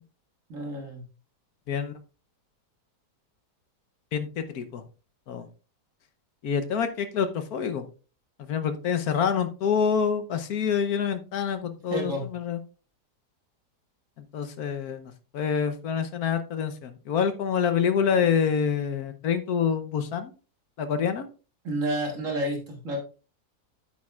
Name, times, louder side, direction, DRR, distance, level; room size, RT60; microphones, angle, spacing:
voice 1, 0.5-1.0 11.6-12.3 21.6-23.0, right 1 dB, 50° right, 2 dB, 1.8 m, -30 dB
voice 2, 4.1-4.8 5.3-5.5 6.4-7.8 8.4-12.6 14.3-20.3 20.8-21.3, left 7 dB, 65° left, 9 dB, 1.3 m, -27 dB
9.2 x 8.5 x 2.4 m, 0.34 s
omnidirectional pair, 1.8 m